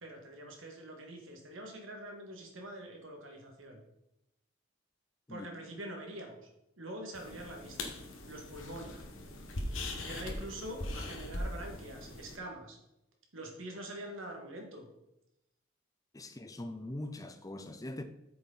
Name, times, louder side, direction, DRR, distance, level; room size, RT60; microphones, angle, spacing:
voice 1, 0.0-3.8 5.3-6.5 6.8-7.9 8.3-9.0 10.0-12.8 13.3-14.9, right 1 dB, 85° right, 2.3 m, -45 dB
sound 1, 7.1-12.4, left 1 dB, 80° left, 1.5 m, -41 dB
voice 2, 16.1-18.0, left 1 dB, 20° left, 0.6 m, -42 dB
8.9 x 6.7 x 4.2 m
head